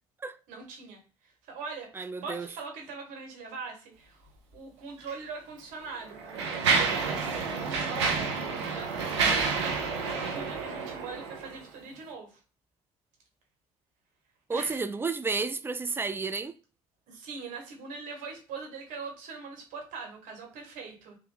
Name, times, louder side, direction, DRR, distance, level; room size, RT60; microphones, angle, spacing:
voice 1, 0.5-12.4 14.5-14.8 17.1-21.2, right 4 dB, 70° right, 1.2 m, -42 dB
voice 2, 2.0-2.5 14.5-16.5, right 4 dB, 15° right, 0.4 m, -31 dB
Mechanisms, 5.0-5.1 5.9-11.6, right 5 dB, 85° right, 0.6 m, -29 dB
3.5 x 2.2 x 3.2 m
hypercardioid pair, 55°, 14 cm